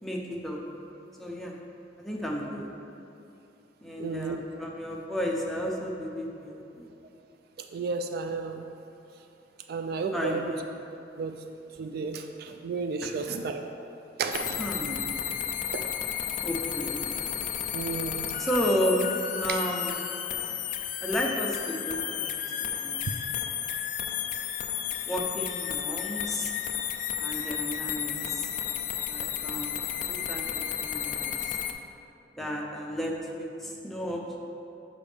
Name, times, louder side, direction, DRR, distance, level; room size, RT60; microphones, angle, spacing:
voice 1, 0.0-0.6 1.2-1.5 2.0-2.7 3.8-6.9 10.1-10.6 13.0-13.2 14.6-15.4 16.4-17.0 18.4-19.0 19.4-20.0 21.0-23.0 25.1-26.5 27.2-28.5 29.0-29.8 30.1-31.6 32.4-34.4, equal, ahead, -2 dB, 0.6 m, -33 dB
voice 2, 4.0-4.4 7.7-8.6 9.7-10.5 11.2-11.3 11.8-13.6 14.2-14.6 15.7-15.8 17.7-18.3 19.5-19.6, right 4 dB, 55° right, 6 dB, 0.3 m, -32 dB
sound 1, 14.3-31.7, left 9 dB, 45° left, 0.3 m, -32 dB
6.9 x 5.0 x 3.4 m, 2.7 s
head